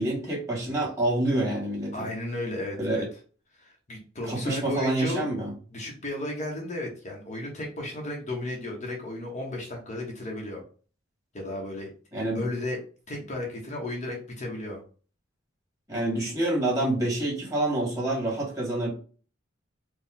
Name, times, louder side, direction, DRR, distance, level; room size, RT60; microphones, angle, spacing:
voice 1, 0.0-2.1 2.8-3.1 4.3-5.5 12.1-12.4 15.9-18.9, right 1 dB, 15° right, -4 dB, 2.0 m, -27 dB
voice 2, 1.9-3.1 3.6-5.2 5.7-10.6 11.3-11.9 12.3-12.8 13.1-14.8, left 1 dB, 35° left, -1 dB, 1.0 m, -34 dB
4.5 x 2.4 x 3.6 m, 0.38 s
head